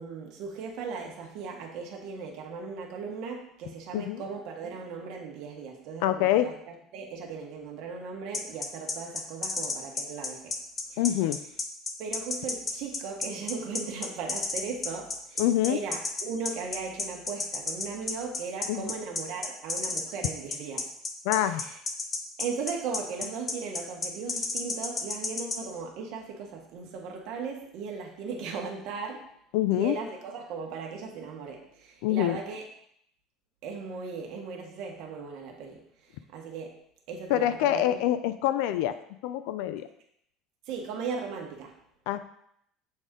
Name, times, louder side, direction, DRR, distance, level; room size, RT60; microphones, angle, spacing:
voice 1, 0.0-6.5 6.9-10.5 10.9-11.0 12.0-15.4 15.7-20.8 21.5-21.6 22.4-29.2 29.7-32.6 33.6-35.8 36.3-36.7 37.1-38.0 40.7-41.7, right 5 dB, 55° right, 1 dB, 1.2 m, -37 dB
voice 2, 6.0-6.5 11.0-11.4 15.4-15.8 18.7-18.9 21.2-21.6 29.5-30.0 32.0-32.4 37.3-38.9 39.2-39.9 42.1-42.2, left 13 dB, 75° left, 11 dB, 0.4 m, -25 dB
sound 1, 8.3-25.6, left 4 dB, 20° left, 0.6 m, -31 dB
6.7 x 4.1 x 3.7 m, 0.71 s
cardioid pair, 165°, 0 cm